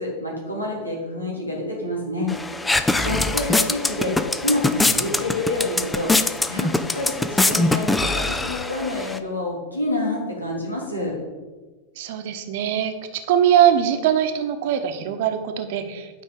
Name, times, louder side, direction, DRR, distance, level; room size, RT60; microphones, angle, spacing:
voice 1, 0.0-2.3 3.0-4.1 4.4-6.1 6.5-11.1, left 2 dB, 85° left, -2 dB, 3.3 m, -27 dB
sound 1, 2.3-9.2, left 2 dB, 10° left, 0.6 m, -23 dB
voice 2, 12.0-16.2, right 9 dB, 50° right, 7 dB, 1.1 m, -21 dB
9.6 x 5.5 x 8.2 m, 1.3 s
figure-of-eight pair, 90°, 0 cm